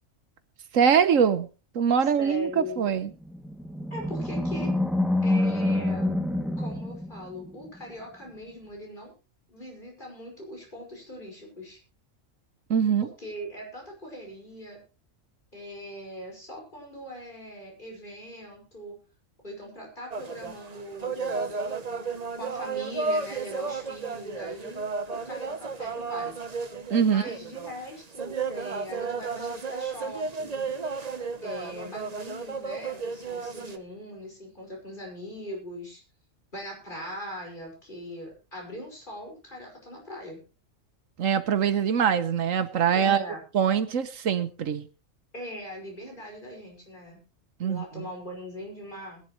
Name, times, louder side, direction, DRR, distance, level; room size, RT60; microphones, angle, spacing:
voice 1, 0.7-1.5 1.7-3.1 12.7-13.1 26.9-27.2 41.2-43.3 43.5-44.9 47.6-48.1, right 7 dB, 80° right, 13 dB, 1.4 m, -23 dB
voice 2, 2.0-2.8 3.9-4.7 5.2-6.1 6.6-9.1 9.5-11.8 13.2-14.8 15.5-19.0 19.4-21.6 22.3-26.4 27.0-30.7 31.4-36.0 36.5-40.4 42.9-43.4 45.3-47.2 47.6-49.2, equal, 40° left, 0 dB, 5.8 m, -41 dB
Animal, 3.1-7.7, left 1 dB, ahead, 1.2 m, -27 dB
sound 1, 20.1-33.8, right 4 dB, 35° right, 1.0 m, -33 dB
21.0 x 11.0 x 3.1 m, 0.32 s
omnidirectional pair, 1.3 m